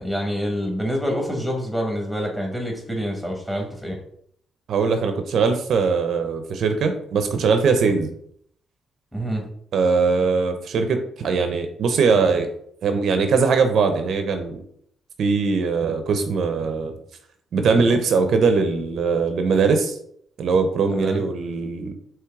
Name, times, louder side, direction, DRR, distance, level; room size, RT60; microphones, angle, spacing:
voice 1, 0.0-4.0 9.1-9.4 20.9-21.2, equal, 5° left, 1 dB, 1.5 m, -27 dB
voice 2, 4.7-8.1 9.7-12.5 12.8-14.6 15.2-16.9 17.5-20.0 20.4-21.9, right 4 dB, 65° right, 7 dB, 0.6 m, -21 dB
4.6 x 3.1 x 3.5 m, 0.66 s
cardioid pair, 90°, 0 cm